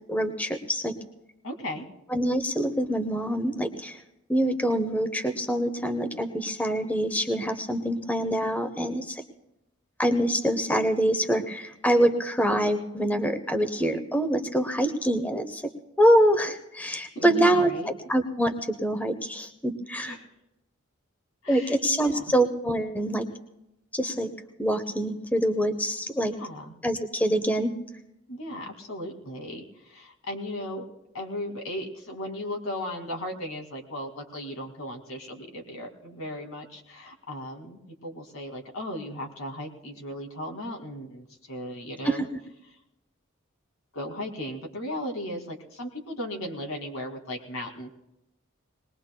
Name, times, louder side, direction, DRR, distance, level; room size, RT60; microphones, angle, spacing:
voice 1, 0.1-1.0 2.1-4.0 4.3-9.2 10.0-15.7 16.0-17.7 18.1-20.2 21.5-23.3 23.9-24.3 24.6-26.3 26.8-27.7 42.0-42.2, right 1 dB, 10° left, 8 dB, 0.7 m, -25 dB
voice 2, 1.4-1.9 17.2-17.9 20.0-20.3 21.4-22.4 26.4-26.7 28.3-30.9 31.1-42.2 43.9-47.9, left 1 dB, 85° left, 2 dB, 2.3 m, -36 dB
21.5 x 20.0 x 2.2 m, 0.89 s
head